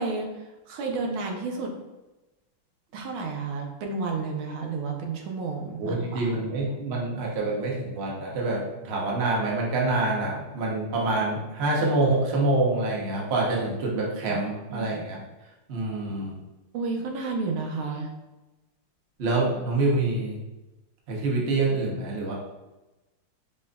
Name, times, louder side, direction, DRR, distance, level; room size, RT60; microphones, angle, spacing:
voice 1, 0.0-1.7 2.9-6.3 13.9-14.0 14.3-14.4 14.7-14.9 16.7-18.1, right 4 dB, 75° right, 1 dB, 1.5 m, -31 dB
voice 2, 5.8-15.2 15.7-16.4 19.2-20.4 21.1-22.3, right 2 dB, 55° right, -3 dB, 0.7 m, -26 dB
5.3 x 3.6 x 2.3 m, 1.1 s
omnidirectional pair, 2.4 m